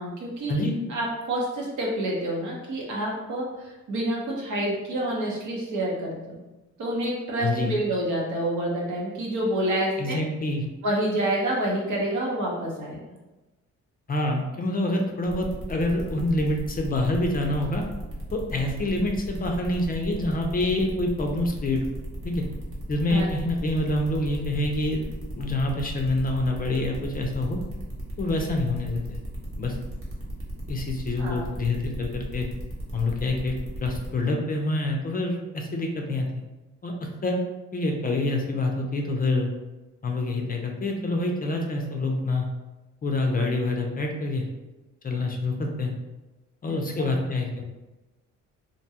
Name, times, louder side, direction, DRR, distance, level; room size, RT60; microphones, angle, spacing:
voice 1, 0.0-0.6 0.9-6.4 6.8-10.2 10.8-13.0 23.1-23.3 31.2-31.5 47.0-47.1, right 1 dB, 75° right, -3 dB, 0.9 m, -28 dB
voice 2, 7.4-7.8 10.0-10.7 14.1-17.8 18.3-21.8 22.2-22.4 22.9-25.0 25.3-27.6 28.2-29.2 29.6-29.8 30.7-32.5 32.9-33.5 33.8-36.3 36.8-37.4 37.7-39.5 40.0-42.5 43.0-44.4 45.0-45.9 46.6-47.6, left 2 dB, 30° left, 2 dB, 0.4 m, -26 dB
sound 1, 15.3-34.1, equal, 45° right, 1.0 m, -37 dB
2.5 x 2.2 x 2.8 m, 1.1 s
cardioid pair, 90°, 30 cm